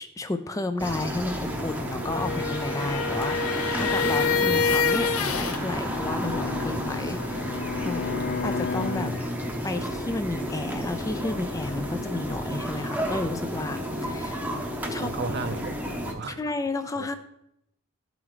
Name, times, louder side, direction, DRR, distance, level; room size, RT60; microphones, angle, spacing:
voice 1, 0.0-8.0 8.4-9.3 9.6-14.4 14.9-15.1 16.4-17.2, left 2 dB, 15° left, 9 dB, 0.3 m, -32 dB
sound 1, 0.8-16.1, equal, 10° right, 0.7 m, -31 dB
sound 2, 2.0-5.6, left 5 dB, 80° left, 0.6 m, -26 dB
Bowed string instrument, 5.5-9.9, left 4 dB, 50° left, 0.8 m, -34 dB
voice 2, 15.0-16.5 16.9-17.1, right 3 dB, 50° right, 10 dB, 0.6 m, -34 dB
12.0 x 4.7 x 3.8 m, 0.78 s
head